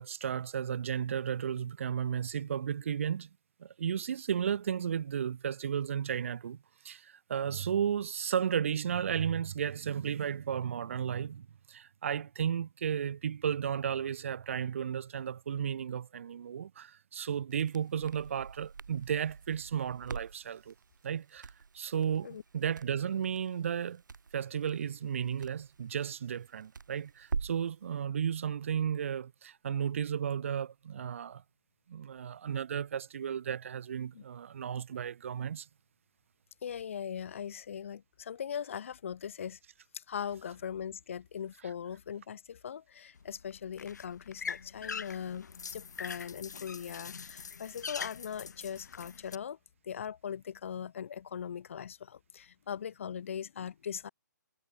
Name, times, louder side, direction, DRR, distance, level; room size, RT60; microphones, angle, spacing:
voice 1, 0.0-3.3 3.6-6.6 6.8-20.7 21.0-21.5 21.7-24.0 24.3-31.4 31.9-35.7, right 8 dB, 45° right, 1.0 m, -34 dB
Crackle, 17.5-27.7, right 5 dB, 80° right, 2.4 m, -45 dB
voice 2, 36.6-39.6 39.9-45.5 45.7-49.6 49.8-54.1, left 8 dB, 45° left, 1.0 m, -40 dB
sound 1, 43.2-49.4, left 6 dB, 65° left, 4.0 m, -43 dB
hypercardioid pair, 170°, 10 cm